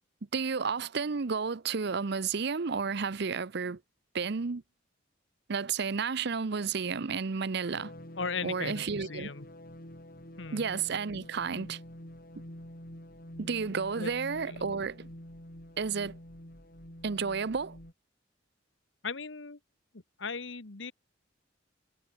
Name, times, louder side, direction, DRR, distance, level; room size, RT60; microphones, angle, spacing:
voice 1, 0.3-3.8 4.1-4.6 5.5-7.9 8.4-9.3 10.5-11.8 13.4-15.1 15.8-16.2 17.0-17.8, right 5 dB, 60° right, 0.7 m, -32 dB
sound 1, 7.7-17.9, equal, 50° left, 6.7 m, -48 dB
voice 2, 8.2-9.5 10.4-10.6 14.0-14.1 14.4-14.7 19.0-19.6 20.2-20.9, left 5 dB, 75° left, 1.4 m, -37 dB
head